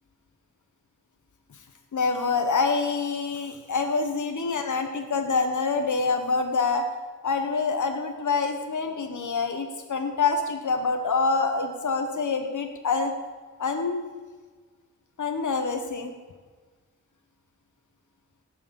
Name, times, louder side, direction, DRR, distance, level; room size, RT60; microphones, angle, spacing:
voice 1, 1.9-6.9 7.2-13.1 13.6-14.1 15.2-16.1, left 4 dB, 70° left, 5 dB, 1.2 m, -26 dB
18.0 x 6.5 x 7.5 m, 1.4 s
wide cardioid pair, 70°, 31 cm